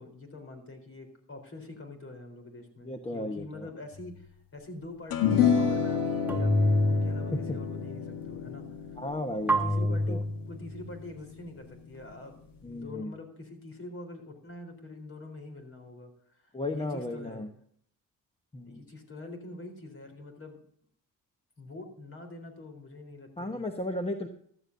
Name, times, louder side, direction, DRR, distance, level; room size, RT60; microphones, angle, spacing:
voice 1, 0.0-8.6 9.3-12.4 12.7-17.4 18.6-20.6 21.6-23.6, left 2 dB, 40° left, 6 dB, 3.9 m, -45 dB
voice 2, 2.8-3.7 6.3-6.4 7.3-7.4 9.0-10.2 12.6-13.1 16.5-17.5 18.5-18.8 23.4-24.3, left 1 dB, 15° left, 5 dB, 1.0 m, -35 dB
sound 1, 3.9-4.1 6.3-7.9 9.5-10.9, equal, 5° right, 1.4 m, -28 dB
sound 2, 5.1-11.6, left 7 dB, 85° left, 1.7 m, -30 dB
14.5 x 12.5 x 2.6 m, 0.63 s
cardioid pair, 100°, 33 cm